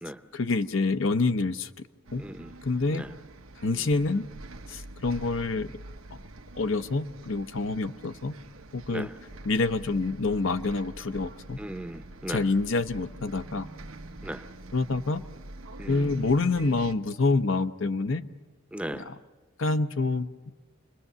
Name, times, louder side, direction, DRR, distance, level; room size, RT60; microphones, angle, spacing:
voice 1, 0.3-1.7 2.1-2.2 2.6-3.0 3.6-4.3 4.7-5.7 6.6-8.3 8.7-9.1 9.4-11.6 12.3-13.7 14.7-15.2 15.9-18.3 19.0-19.2 19.6-20.3, left 3 dB, 70° left, 10 dB, 0.8 m, -27 dB
Bus, 2.0-16.9, right 2 dB, 90° right, 1.1 m, -45 dB
voice 2, 2.2-2.6 2.9-3.1 3.7-3.9 8.9-9.1 11.6-12.5 14.2-14.4 15.8-16.2 18.7-19.1, right 1 dB, 5° right, 9 dB, 0.7 m, -37 dB
28.0 x 21.0 x 6.9 m, 1.3 s
head